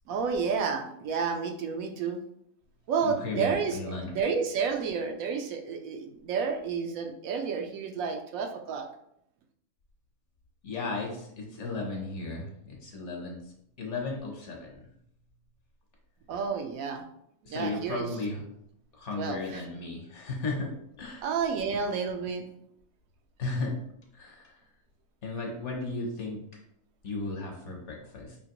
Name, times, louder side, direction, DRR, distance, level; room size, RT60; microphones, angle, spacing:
voice 1, 0.1-2.2 2.9-8.9 16.3-17.0 17.5-18.1 19.2-19.6 21.2-22.5, right 5 dB, 75° right, 4 dB, 1.0 m, -30 dB
voice 2, 3.0-4.1 10.6-13.4 13.8-14.9 17.4-18.4 19.0-20.7 21.0-21.3 23.4-23.7 24.2-24.5 25.2-26.4 27.0-28.4, left 3 dB, 55° left, 0 dB, 1.2 m, -35 dB
5.0 x 2.9 x 2.9 m, 0.73 s
omnidirectional pair, 1.5 m